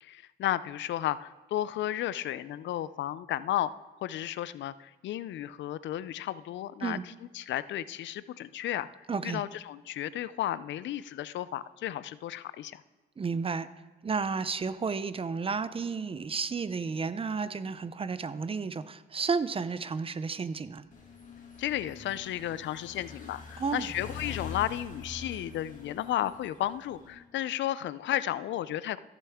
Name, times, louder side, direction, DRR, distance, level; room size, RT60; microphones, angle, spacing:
voice 1, 0.0-3.7 4.0-7.0 7.3-12.8 21.6-29.0, left 12 dB, 70° left, 16 dB, 0.4 m, -33 dB
voice 2, 9.1-9.4 13.2-13.7 14.0-20.8 23.6-23.9, right 5 dB, 30° right, 13 dB, 0.5 m, -32 dB
sound 1, 20.9-27.1, left 4 dB, 40° left, 2.3 m, -44 dB
14.5 x 6.8 x 3.6 m, 1.3 s
cardioid pair, 90°, 20 cm